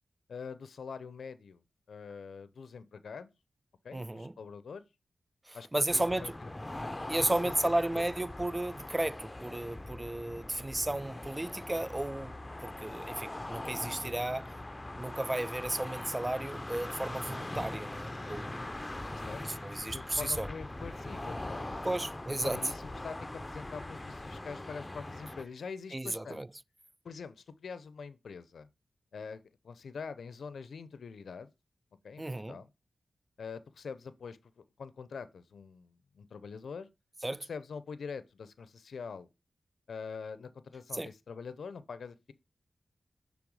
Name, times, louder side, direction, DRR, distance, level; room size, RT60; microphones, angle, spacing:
voice 1, 0.3-1.6 1.9-3.3 3.8-4.8 5.5-5.7 5.9-6.5 7.2-8.1 19.2-19.4 19.7-21.9 22.4-26.4 27.0-28.7 29.1-31.5 32.0-32.7 33.4-36.9 37.5-39.3 39.9-42.3, left 5 dB, 80° left, 0.5 m, -44 dB
voice 2, 3.9-4.4 5.5-6.3 7.1-14.5 15.0-18.7 19.4-20.5 21.8-22.6 25.9-26.5 32.2-32.6 37.2-37.5 40.9-41.1, right 1 dB, 25° right, 0.3 m, -34 dB
sound 1, 5.9-25.4, left 1 dB, 25° left, 0.6 m, -41 dB
6.2 x 3.4 x 4.7 m
cardioid pair, 40°, 0 cm